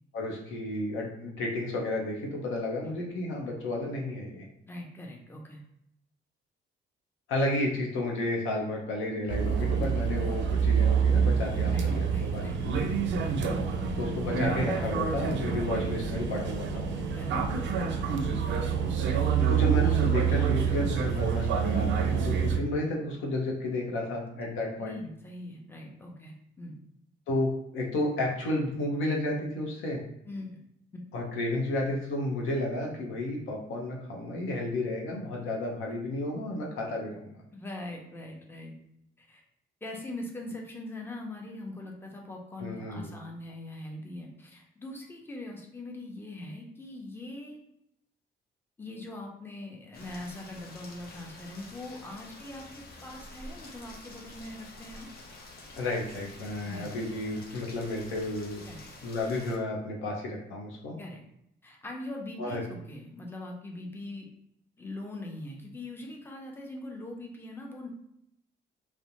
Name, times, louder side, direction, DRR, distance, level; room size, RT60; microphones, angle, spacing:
voice 1, 0.1-4.5 7.3-12.7 14.0-17.0 19.5-25.0 27.3-30.0 31.1-37.4 42.6-43.1 55.8-58.6 59.0-60.9 62.4-62.6, left 2 dB, 90° left, -1 dB, 0.7 m, -32 dB
voice 2, 4.7-5.6 11.7-12.9 13.2-13.4 15.7-15.9 17.1-17.7 24.8-26.8 30.2-30.6 30.9-31.0 37.5-38.7 39.2-39.4 39.8-47.6 48.8-55.1 56.6-56.9 58.6-58.9 61.0-61.2 61.6-64.3 64.8-67.9, left 1 dB, 10° left, 0 dB, 0.6 m, -42 dB
sound 1, 9.3-22.6, right 6 dB, 65° right, 0.4 m, -27 dB
Rain, 49.9-59.6, left 2 dB, 50° left, 0.7 m, -48 dB
2.4 x 2.1 x 2.9 m, 0.77 s
cardioid pair, 90°, 20 cm